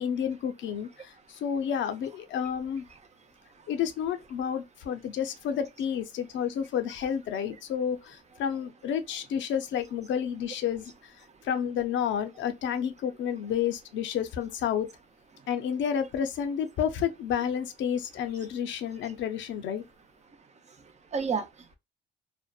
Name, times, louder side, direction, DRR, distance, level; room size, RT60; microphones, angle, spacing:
voice 1, 0.0-2.8 3.7-11.1 11.4-14.9 15.5-19.8, left 8 dB, 70° left, 0.5 m, -30 dB
voice 2, 2.9-3.7 11.2-11.5 15.3-15.5 19.0-19.1 20.2-21.8, right 5 dB, 35° right, 0.5 m, -37 dB
2.6 x 2.1 x 2.2 m
cardioid pair, 90°, 20 cm